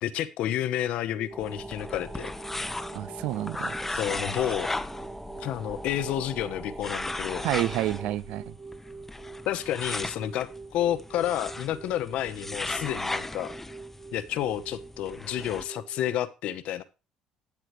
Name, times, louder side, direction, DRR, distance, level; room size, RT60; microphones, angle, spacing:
voice 1, 0.0-2.3 3.9-4.7 5.4-7.5 9.5-13.5 14.1-16.8, left 11 dB, 70° left, 0.9 m, -30 dB
sound 1, 1.1-16.1, right 4 dB, 40° right, 1.4 m, -45 dB
sound 2, 1.3-8.2, equal, 5° right, 1.1 m, -43 dB
sound 3, 1.4-15.6, left 2 dB, 10° left, 0.8 m, -37 dB
voice 2, 2.9-3.7 7.4-8.5, right 15 dB, 75° right, 0.4 m, -29 dB
12.0 x 9.0 x 3.2 m
supercardioid pair, 75°, 2 cm